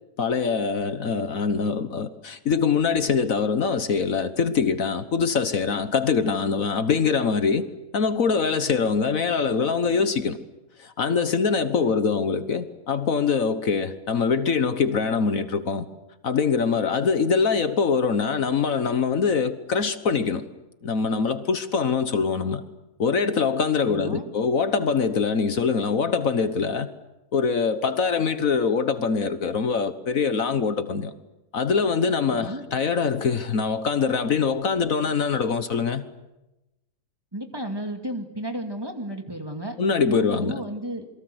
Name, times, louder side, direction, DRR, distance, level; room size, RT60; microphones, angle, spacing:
voice 1, 0.2-7.6 7.9-10.4 10.8-15.8 16.2-20.4 20.8-22.6 23.0-26.9 27.3-31.1 31.5-36.0 39.8-40.6, left 5 dB, 60° left, 1.6 m, -23 dB
voice 2, 23.9-24.3 32.3-32.7 37.3-39.8 40.1-41.1, right 1 dB, 15° right, 2.4 m, -33 dB
28.5 x 22.5 x 8.0 m
omnidirectional pair, 1.6 m